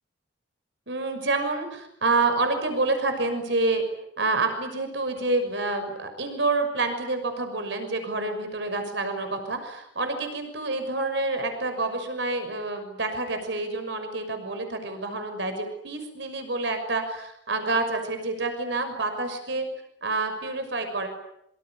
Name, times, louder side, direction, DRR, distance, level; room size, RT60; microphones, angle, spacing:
voice 1, 0.9-3.8 4.2-19.7 20.0-21.1, right 3 dB, 70° right, 7 dB, 6.3 m, -28 dB
26.5 x 25.5 x 8.9 m, 0.77 s
head